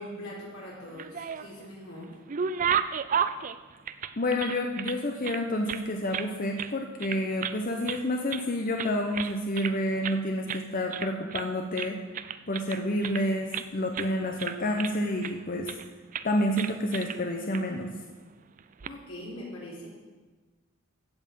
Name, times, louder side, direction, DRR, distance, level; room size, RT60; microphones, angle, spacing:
voice 1, 0.0-2.2 18.8-19.9, left 1 dB, 90° left, -5 dB, 4.8 m, -42 dB
sound 1, 0.8-1.7 2.0-5.0 5.2-6.3 6.6-6.8 7.0-7.6 7.9-8.5 8.8-9.8 10.0-10.2 10.5-10.6 10.9-11.5 11.8-13.7 13.9-14.1 14.4-15.3 15.7-15.9 16.1-16.3 16.6-17.2 17.5-17.6 18.6-18.9, right 7 dB, 40° right, 0.4 m, -33 dB
voice 2, 4.2-12.0 12.5-15.7 16.2-17.9, left 1 dB, 40° left, 2 dB, 0.9 m, -29 dB
15.0 x 8.0 x 5.5 m, 1.3 s
head